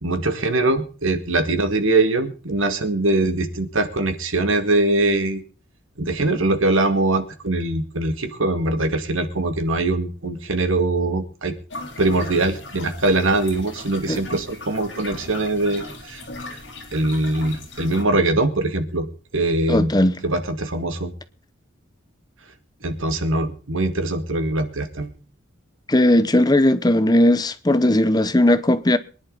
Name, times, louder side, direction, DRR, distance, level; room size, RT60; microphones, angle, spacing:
voice 1, 0.0-5.4 6.0-11.5 12.0-16.2 16.5-16.6 16.9-19.1 19.3-19.9 20.2-21.1 22.8-25.1, right 2 dB, 85° right, 2.2 m, -22 dB
sound 1, 11.7-18.0, left 2 dB, 60° left, 3.6 m, -37 dB
voice 2, 19.7-20.1 25.9-29.0, left 1 dB, 20° left, 0.7 m, -17 dB
23.5 x 10.5 x 4.0 m
head